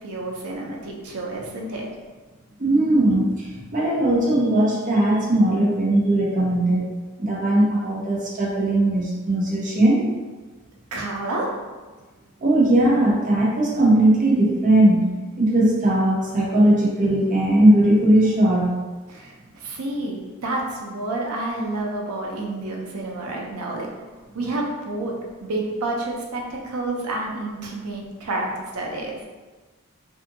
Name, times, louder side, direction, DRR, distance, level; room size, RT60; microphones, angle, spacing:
voice 1, 0.0-1.9 10.9-11.5 19.1-23.9 24.3-29.2, right 2 dB, 90° right, -1 dB, 0.6 m, -29 dB
voice 2, 2.6-6.8 7.2-10.0 12.4-15.1 15.4-18.8, right 1 dB, 35° right, -5 dB, 0.7 m, -19 dB
2.7 x 2.5 x 2.6 m, 1.3 s
head